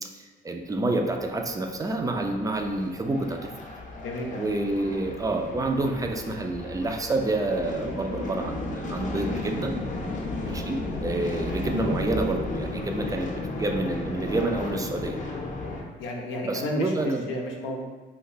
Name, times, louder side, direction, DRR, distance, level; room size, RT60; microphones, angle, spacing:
voice 1, 0.0-3.7 4.4-9.7 10.4-13.3 13.6-15.2 16.4-17.2, right 2 dB, 15° right, 4 dB, 0.3 m, -28 dB
sound 1, 1.0-15.8, left 2 dB, 40° left, 0.6 m, -34 dB
voice 2, 3.9-4.5 9.9-10.1 16.0-17.8, left 1 dB, 85° left, 0 dB, 0.5 m, -32 dB
2.7 x 2.2 x 4.0 m, 1.3 s
cardioid pair, 90°, 20 cm